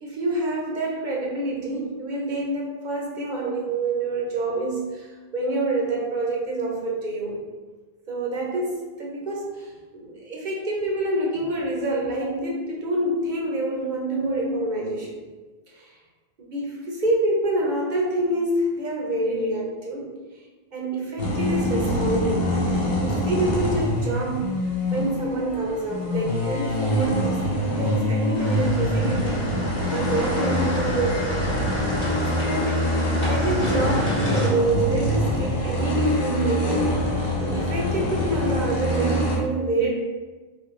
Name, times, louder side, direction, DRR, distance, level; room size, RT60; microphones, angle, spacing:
voice 1, 0.0-7.4 8.1-15.3 15.7-15.9 16.4-20.1 20.7-22.6 22.9-24.5 24.9-27.5 27.8-29.6 29.9-31.4 32.3-36.9 37.4-39.9, right 2 dB, 50° right, -3 dB, 0.8 m, -27 dB
sound 1, 21.2-39.4, left 1 dB, 70° left, 1.1 m, -25 dB
sound 2, 28.3-34.5, equal, 30° left, 1.1 m, -30 dB
3.3 x 3.1 x 3.1 m, 1.3 s
omnidirectional pair, 1.0 m